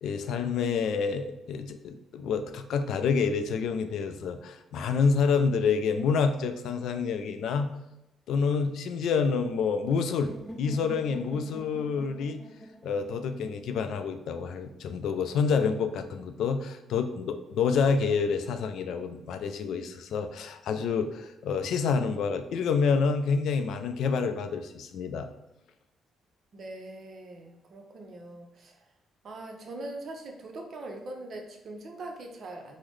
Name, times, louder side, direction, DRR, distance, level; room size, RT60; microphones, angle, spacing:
voice 1, 0.0-7.7 8.3-10.3 10.6-12.4 12.8-25.3, left 5 dB, 75° left, 8 dB, 0.3 m, -28 dB
sound 1, 10.3-14.2, equal, 5° left, 0.4 m, -45 dB
voice 2, 26.5-28.8 29.2-32.8, right 2 dB, 55° right, 2 dB, 0.6 m, -42 dB
3.8 x 2.0 x 3.1 m, 0.91 s
cardioid pair, 90°, 0 cm